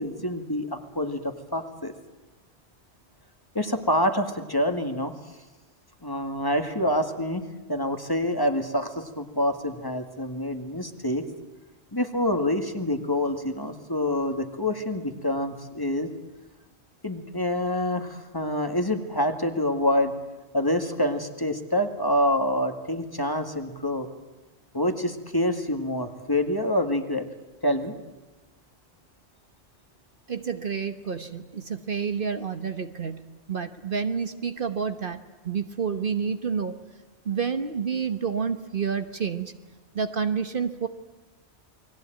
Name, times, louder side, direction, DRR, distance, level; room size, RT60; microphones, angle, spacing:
voice 1, 0.0-1.9 3.5-5.1 6.0-7.4 7.7-11.3 11.9-16.1 17.0-20.1 20.5-24.1 24.7-27.3 27.6-27.9, left 1 dB, 20° left, 6 dB, 2.0 m, -26 dB
voice 2, 30.3-35.2 35.4-36.8 37.2-39.5 39.9-40.9, right 6 dB, 55° right, 9 dB, 1.3 m, -29 dB
29.0 x 21.0 x 9.2 m, 1.1 s
omnidirectional pair, 1.1 m